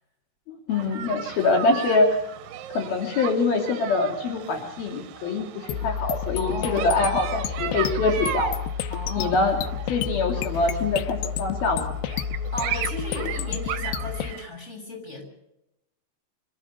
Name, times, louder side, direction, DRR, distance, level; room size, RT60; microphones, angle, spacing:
voice 1, 0.5-2.2 2.7-8.5 9.1-9.6 9.9-11.9, left 3 dB, 65° left, 2 dB, 4.5 m, -24 dB
sound 1, 0.7-14.4, right 9 dB, 70° right, 2.7 m, -36 dB
sound 2, 5.7-14.3, left 8 dB, 85° left, 3.0 m, -30 dB
voice 2, 6.3-7.0 8.9-9.6 10.5-11.0 12.5-15.2, left 1 dB, 15° left, 2 dB, 6.7 m, -35 dB
26.0 x 15.5 x 6.6 m, 0.85 s
omnidirectional pair, 4.7 m